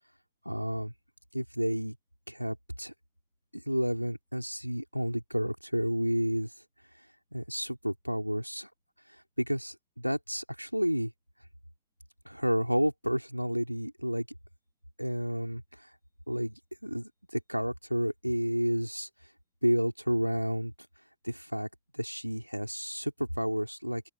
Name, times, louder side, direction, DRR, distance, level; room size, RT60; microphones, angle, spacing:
voice 1, 0.5-0.9 1.3-2.0 2.3-2.9 3.5-6.5 7.3-8.7 9.4-11.1 12.3-14.3 15.0-15.9 16.3-19.1 19.6-20.7 21.2-21.7 21.9-24.0, equal, 90° right, 4.0 m, -31 dB
open air
figure-of-eight pair, 90°, 0 cm